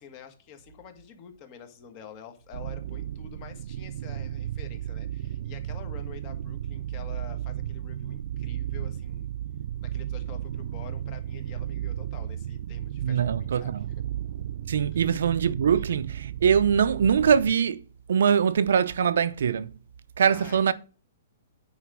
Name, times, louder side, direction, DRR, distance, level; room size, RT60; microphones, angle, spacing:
voice 1, 0.0-9.3 9.8-13.8 14.9-15.1 20.2-20.7, left 8 dB, 25° left, 1.6 m, -47 dB
sound 1, 2.5-17.5, right 11 dB, 50° right, 0.4 m, -34 dB
voice 2, 13.0-13.9 14.7-17.8 18.1-19.7 20.2-20.7, right 7 dB, 70° right, 0.8 m, -23 dB
9.3 x 4.9 x 6.1 m
hypercardioid pair, 175°, 0 cm